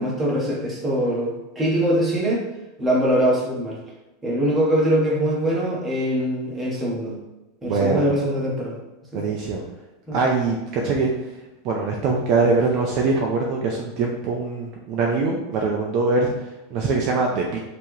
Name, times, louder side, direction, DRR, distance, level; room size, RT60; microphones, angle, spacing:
voice 1, 0.0-2.4 2.8-3.8 4.2-7.2 7.6-8.7 9.1-9.3 10.1-10.2, equal, 10° right, -5 dB, 1.1 m, -22 dB
voice 2, 7.6-8.0 9.1-9.6 10.1-11.1 11.6-16.3 16.7-17.6, right 3 dB, 35° right, 0 dB, 0.5 m, -22 dB
5.6 x 2.9 x 3.2 m, 1.0 s
supercardioid pair, 170°, 0 cm